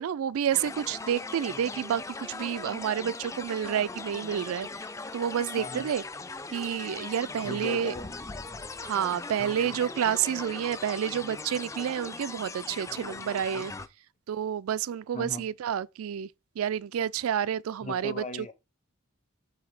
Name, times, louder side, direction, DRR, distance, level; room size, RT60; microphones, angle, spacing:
voice 1, 0.0-4.7 5.1-6.0 6.5-7.9 8.8-13.7 14.3-16.3 16.6-18.2, right 9 dB, 85° right, 0.3 m, -29 dB
sound 1, 0.5-13.9, left 3 dB, 15° left, 0.3 m, -39 dB
voice 2, 5.5-5.9 7.4-8.2 15.1-15.5 17.8-18.5, left 3 dB, 35° left, 0.7 m, -38 dB
4.9 x 3.9 x 5.8 m
head